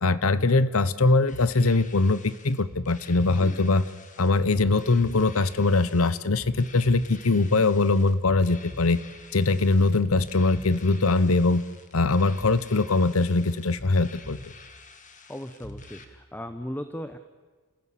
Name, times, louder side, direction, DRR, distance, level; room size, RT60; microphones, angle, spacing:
voice 1, 0.0-3.8 4.2-9.0 9.3-11.6 11.9-14.4, left 3 dB, 75° left, 16 dB, 0.9 m, -22 dB
sound 1, 1.3-16.0, left 1 dB, 35° left, 2.0 m, -44 dB
voice 2, 15.3-17.2, equal, 10° left, 9 dB, 0.9 m, -37 dB
29.0 x 15.5 x 8.6 m, 1.4 s
head